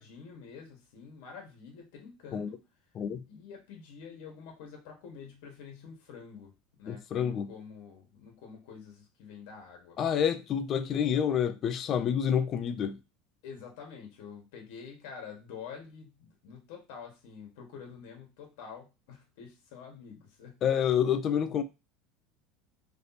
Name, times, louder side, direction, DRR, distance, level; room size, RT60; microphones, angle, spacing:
voice 1, 0.0-2.6 3.2-6.5 6.8-10.0 13.4-20.6, left 6 dB, 70° left, 1.4 m, -47 dB
voice 2, 6.9-7.5 10.0-13.0 20.6-21.6, left 8 dB, 30° left, 0.4 m, -28 dB
3.4 x 2.9 x 4.0 m
cardioid pair, 160°, 0 cm